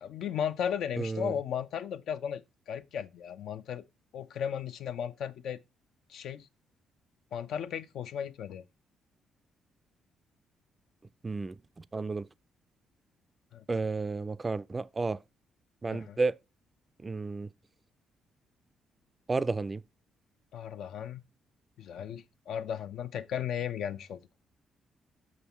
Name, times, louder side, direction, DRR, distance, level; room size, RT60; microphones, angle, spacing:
voice 1, 0.0-3.8 4.1-5.6 6.1-6.5 7.3-8.6 13.5-13.6 15.9-16.2 20.5-21.2 21.8-24.2, left 8 dB, 75° left, 0.6 m, -35 dB
voice 2, 1.0-1.4 11.2-12.3 13.7-15.2 15.8-16.4 17.0-17.5 19.3-19.8, right 3 dB, 25° right, 0.4 m, -32 dB
6.2 x 5.4 x 4.2 m
cardioid pair, 90°, 0 cm